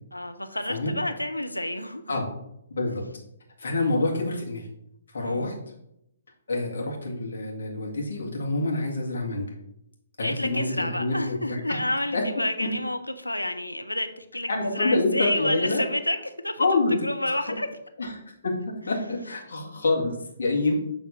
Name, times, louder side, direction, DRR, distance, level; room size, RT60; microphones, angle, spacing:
voice 1, 0.1-2.2 3.8-4.1 5.2-5.5 10.2-16.7 17.0-17.8, left 1 dB, 85° left, 8 dB, 0.7 m, -30 dB
voice 2, 3.6-4.7 5.1-5.6 6.5-9.5 10.2-11.6 12.1-12.2 12.6-12.7 14.5-15.8 16.6-17.0 17.3-17.4 18.0-20.7, left 2 dB, 60° left, -1 dB, 2.0 m, -27 dB
7.2 x 3.6 x 5.7 m, 0.80 s
figure-of-eight pair, 130°, 0 cm